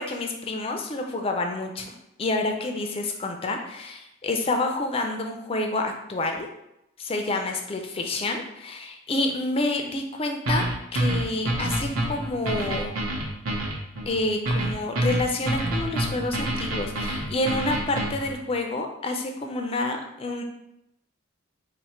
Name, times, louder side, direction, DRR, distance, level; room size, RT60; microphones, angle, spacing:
voice 1, 0.0-6.5 7.0-10.7 10.9-12.9 14.1-20.4, left 2 dB, 25° left, 3 dB, 0.4 m, -28 dB
sound 1, 10.5-18.3, right 1 dB, 75° right, 0.9 m, -27 dB
4.2 x 2.1 x 4.2 m, 0.84 s
head